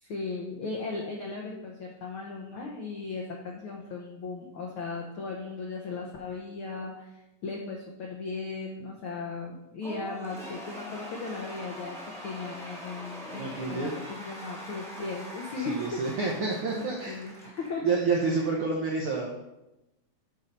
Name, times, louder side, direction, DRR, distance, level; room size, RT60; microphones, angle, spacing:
voice 1, 0.0-12.0 12.2-16.4 16.7-17.9 18.2-18.5, left 4 dB, 80° left, -1 dB, 1.2 m, -37 dB
Cheering / Applause / Crowd, 9.8-18.5, equal, ahead, 1.2 m, -43 dB
voice 2, 13.4-13.9 15.6-17.2 17.8-19.3, right 4 dB, 75° right, -1 dB, 1.2 m, -29 dB
9.5 x 5.2 x 4.2 m, 0.94 s
omnidirectional pair, 3.6 m